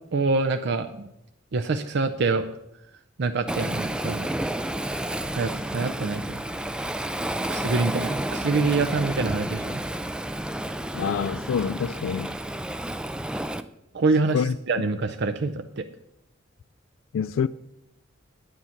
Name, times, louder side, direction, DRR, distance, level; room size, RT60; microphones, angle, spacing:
voice 1, 0.1-1.1 1.5-2.5 3.2-4.3 5.3-6.4 7.5-9.8 13.9-15.9, right 3 dB, 60° right, 0.6 m, -26 dB
Waves surf, 3.5-13.6, right 1 dB, 5° right, 0.4 m, -30 dB
voice 2, 10.9-12.4 14.3-14.6 17.1-17.5, left 6 dB, 75° left, 0.3 m, -26 dB
10.0 x 9.4 x 5.8 m
head